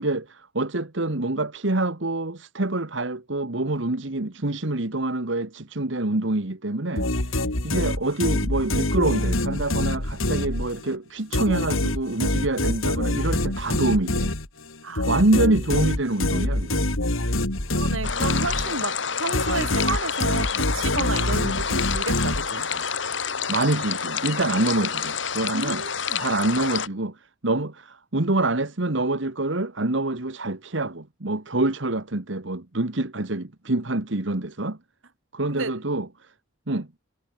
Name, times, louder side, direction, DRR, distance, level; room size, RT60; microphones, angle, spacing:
voice 1, 0.0-7.1 7.6-14.3 15.1-16.9 23.5-25.8 26.1-27.1 27.4-34.8 35.3-36.1 36.7-36.9, right 2 dB, 65° right, 1.7 m, -26 dB
sound 1, 7.0-10.9 11.3-19.0 19.3-22.8, left 1 dB, 90° left, 3.9 m, -25 dB
voice 2, 17.7-22.7 25.5-26.2 35.5-35.8, right 3 dB, 80° right, 3.7 m, -31 dB
sound 2, 18.0-26.9, left 6 dB, 60° left, 2.5 m, -28 dB
head